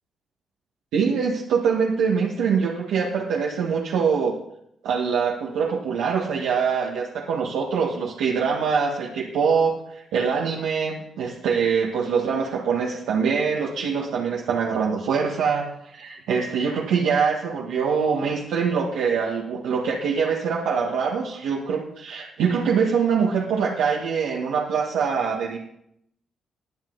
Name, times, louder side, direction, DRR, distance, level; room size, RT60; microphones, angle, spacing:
voice 1, 0.9-4.4 4.8-25.6, right 6 dB, 85° right, -1 dB, 1.5 m, -24 dB
20.5 x 7.4 x 3.9 m, 0.75 s
supercardioid pair, 60°, 0 cm